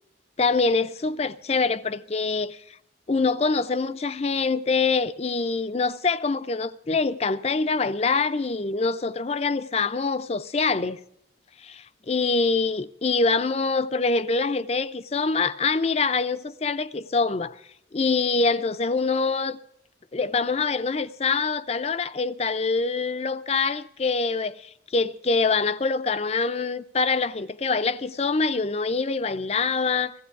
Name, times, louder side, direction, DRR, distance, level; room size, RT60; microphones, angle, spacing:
voice 1, 0.4-2.8 3.1-11.0 11.6-11.7 12.1-17.6 17.9-19.6 20.1-30.1, left 4 dB, 35° left, 0.5 m, -25 dB
16.0 x 15.5 x 4.7 m
head